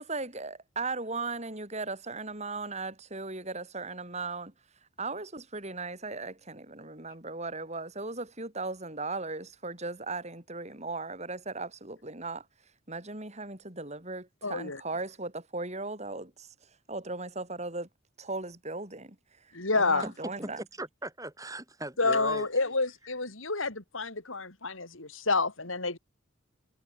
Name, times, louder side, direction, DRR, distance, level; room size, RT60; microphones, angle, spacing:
voice 1, 0.0-4.5 5.0-12.5 12.9-16.5 16.9-17.9 18.2-19.2 19.4-20.6, right 3 dB, 35° right, 6.2 m, -37 dB
voice 2, 14.4-14.8 19.5-20.1 22.0-26.0, left 3 dB, 75° left, 4.3 m, -29 dB
voice 3, 20.4-22.5, right 1 dB, 15° right, 5.6 m, -39 dB
head